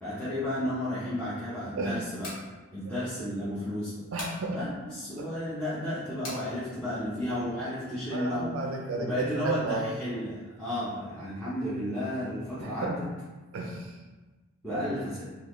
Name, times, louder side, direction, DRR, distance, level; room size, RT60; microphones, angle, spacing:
voice 1, 0.0-2.3 2.7-3.9 4.5-8.5 9.0-13.1 14.6-15.3, left 1 dB, 5° left, -13 dB, 0.7 m, -33 dB
sound 1, 2.2-2.5 4.2-4.4 6.2-6.5, left 1 dB, 70° left, 1.2 m, -39 dB
voice 2, 4.1-4.6 5.2-5.3 8.1-9.9 12.6-13.0 13.5-14.0 14.7-14.8, right 3 dB, 60° right, 1 dB, 0.4 m, -33 dB
3.7 x 2.4 x 3.0 m, 1.2 s
head